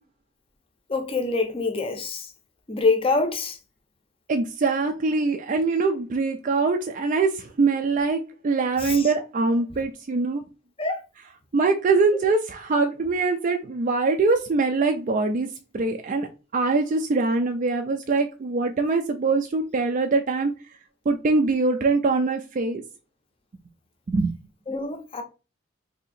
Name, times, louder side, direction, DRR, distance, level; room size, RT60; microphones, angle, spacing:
voice 1, 0.9-2.3 2.7-3.6 8.8-9.1 10.8-11.0 24.7-25.2, left 3 dB, 25° left, 0.6 m, -25 dB
voice 2, 4.3-10.4 11.5-20.5 21.1-22.8 24.1-24.4, right 3 dB, 40° right, 0.3 m, -23 dB
2.7 x 2.7 x 4.1 m
head